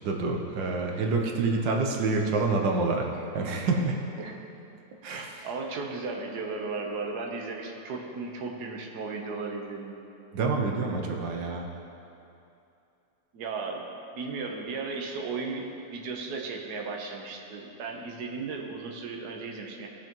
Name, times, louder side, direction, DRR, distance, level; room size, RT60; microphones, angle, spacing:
voice 1, 0.0-4.3 5.0-5.5 10.3-11.7, right 3 dB, 85° right, 1 dB, 1.6 m, -28 dB
voice 2, 5.4-10.0 13.3-13.8 14.1-19.9, right 4 dB, 65° right, 1 dB, 1.4 m, -35 dB
17.5 x 6.6 x 3.0 m, 2.8 s
omnidirectional pair, 1.9 m